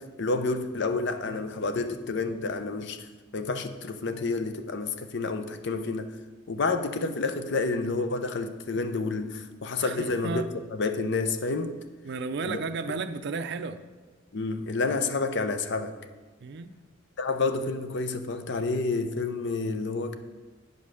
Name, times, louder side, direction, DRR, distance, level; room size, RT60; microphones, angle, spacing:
voice 1, 0.0-6.1 6.5-11.7 12.4-12.6 14.3-15.9 17.2-20.1, left 3 dB, 60° left, 9 dB, 0.7 m, -29 dB
voice 2, 9.8-10.5 12.0-13.8 16.4-16.7, right 4 dB, 60° right, 9 dB, 0.5 m, -33 dB
9.1 x 5.5 x 6.3 m, 1.3 s
head